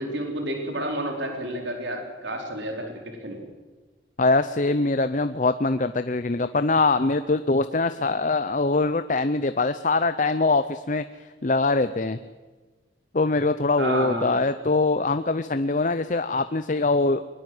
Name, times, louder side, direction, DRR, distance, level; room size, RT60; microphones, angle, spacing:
voice 1, 0.0-3.4 13.8-14.4, right 1 dB, 70° right, 2 dB, 4.4 m, -30 dB
voice 2, 4.2-11.0 11.4-12.2 13.1-17.2, left 3 dB, 40° left, 11 dB, 0.6 m, -23 dB
22.0 x 20.5 x 7.9 m, 1.3 s
head